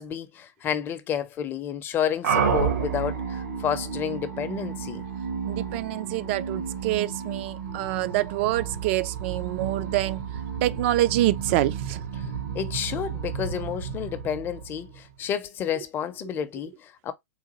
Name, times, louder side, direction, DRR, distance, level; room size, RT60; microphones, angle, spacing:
voice 1, 0.0-5.0 12.2-17.1, left 9 dB, 25° left, 0.5 m, -30 dB
sound 1, 2.2-15.1, right 6 dB, 75° right, 1.1 m, -31 dB
voice 2, 5.5-10.2 10.6-12.1, right 15 dB, 45° right, 0.4 m, -26 dB
3.8 x 2.3 x 2.9 m
hypercardioid pair, 135°, 9 cm